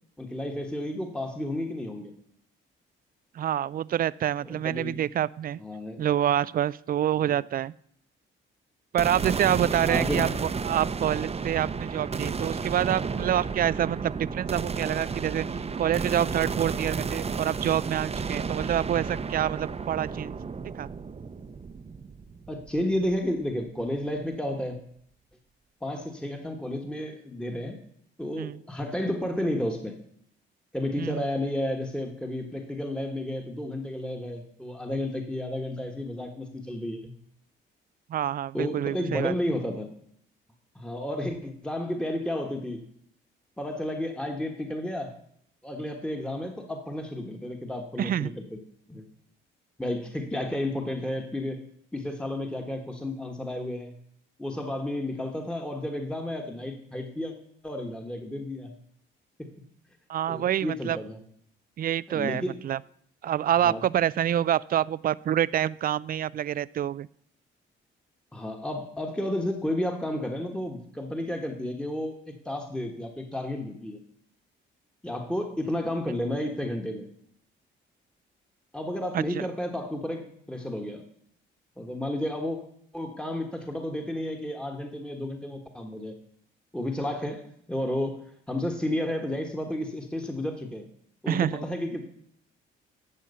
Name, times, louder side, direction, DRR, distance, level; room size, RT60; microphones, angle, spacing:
voice 1, 0.2-2.1 4.4-5.0 5.6-6.0 7.2-7.4 9.8-10.3 22.5-24.8 25.8-27.8 28.2-30.0 30.7-37.1 38.5-39.9 40.7-42.9 43.6-45.1 45.6-48.6 48.9-49.0 49.8-51.7 51.9-53.9 54.4-57.3 57.6-58.7 59.4-59.5 60.3-61.2 62.1-62.6 63.6-63.8 68.3-74.0 75.0-77.1 78.7-81.0 81.8-82.6 82.9-86.2 86.7-88.2 88.5-90.9 91.2-92.1, left 1 dB, 5° left, 3 dB, 1.4 m, -32 dB
voice 2, 3.3-5.6 6.0-7.7 8.9-10.3 10.6-15.5 15.8-20.4 20.7-20.9 28.4-28.6 31.0-31.2 38.1-39.3 48.0-48.3 60.1-61.0 61.8-62.8 63.2-67.1 79.1-79.4 91.3-91.6, right 11 dB, 45° right, 20 dB, 0.4 m, -27 dB
sound 1, 9.0-23.3, right 5 dB, 30° right, 0.8 m, -32 dB
12.0 x 7.4 x 5.5 m, 0.66 s
cardioid pair, 90°, 20 cm